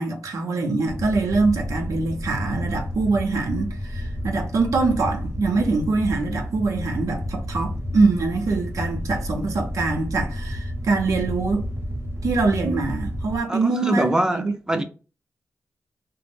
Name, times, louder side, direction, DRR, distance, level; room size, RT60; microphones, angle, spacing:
voice 1, 0.0-11.7 12.2-14.8, right 3 dB, 80° right, 0.6 m, -24 dB
sound 1, 0.8-13.4, equal, 50° right, 0.8 m, -31 dB
voice 2, 13.5-14.8, right 1 dB, 10° right, 0.5 m, -24 dB
2.5 x 2.0 x 3.3 m
cardioid pair, 50°, 6 cm